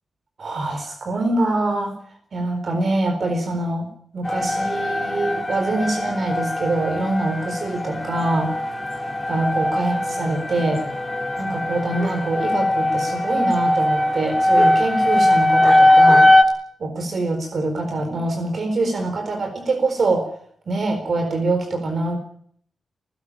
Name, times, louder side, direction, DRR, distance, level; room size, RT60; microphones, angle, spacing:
voice 1, 0.4-1.9 2.3-3.9 4.1-8.5 9.3-10.8 11.4-16.3 16.8-20.3 20.7-22.2, right 2 dB, 55° right, 6 dB, 4.1 m, -24 dB
sound 1, 4.2-16.4, left 1 dB, 15° left, 3.0 m, -20 dB
19.5 x 16.0 x 9.9 m, 0.62 s
cardioid pair, 100°, 0 cm